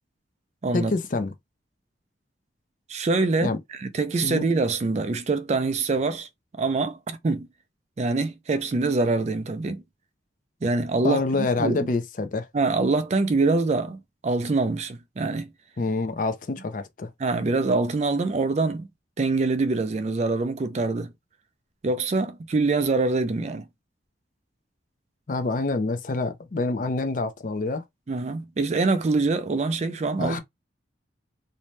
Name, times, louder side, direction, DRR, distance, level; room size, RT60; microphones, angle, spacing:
voice 1, 0.7-1.3 3.4-3.6 4.2-4.5 11.0-12.5 15.8-17.1 25.3-27.8 30.2-30.4, left 3 dB, 45° left, 0.5 m, -27 dB
voice 2, 2.9-6.3 6.6-7.5 8.0-9.8 10.6-11.9 12.5-15.5 17.2-18.9 19.2-21.1 21.8-23.7 28.1-30.4, right 3 dB, 35° right, 0.4 m, -24 dB
2.6 x 2.1 x 3.1 m
head